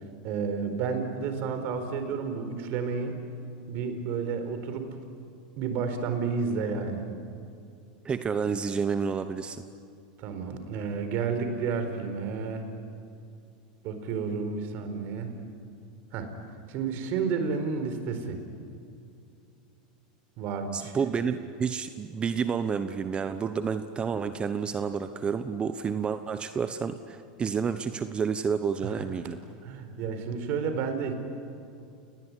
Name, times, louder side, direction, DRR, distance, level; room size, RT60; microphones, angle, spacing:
voice 1, 0.2-3.2 3.7-5.0 5.6-7.0 10.2-12.7 13.8-15.3 16.1-16.3 16.7-18.4 20.4-20.9 28.8-28.9 29.2-29.3 29.6-31.1, right 5 dB, 55° right, 8 dB, 4.4 m, -31 dB
voice 2, 8.0-9.6 20.7-29.4, right 6 dB, 25° right, 10 dB, 1.0 m, -30 dB
29.0 x 19.5 x 10.0 m, 2.5 s
supercardioid pair, 120°, 4 cm